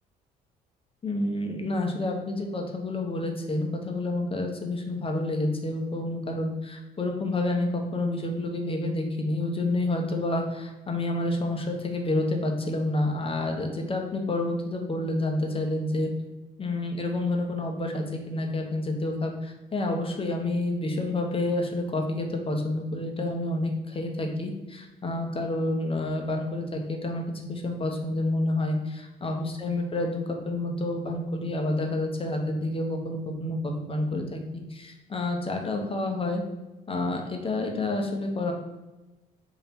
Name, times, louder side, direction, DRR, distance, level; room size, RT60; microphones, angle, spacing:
voice 1, 1.0-16.1 16.6-34.4 34.7-36.4 36.9-38.5, left 2 dB, 25° left, 3 dB, 0.9 m, -29 dB
3.3 x 2.8 x 4.3 m, 1.1 s
hypercardioid pair, 60°, 21 cm